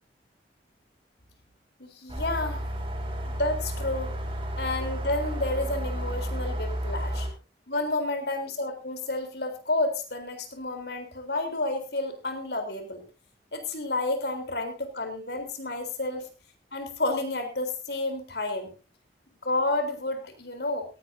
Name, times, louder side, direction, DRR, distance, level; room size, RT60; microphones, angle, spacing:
voice 1, 1.8-2.6 3.3-4.1 4.6-7.3 7.7-13.0 13.5-16.2 16.7-18.7 19.4-20.9, left 2 dB, 65° left, 6 dB, 4.0 m, -30 dB
sound 1, 2.1-7.3, equal, 30° right, 4.7 m, -32 dB
18.0 x 16.5 x 2.7 m, 0.33 s
head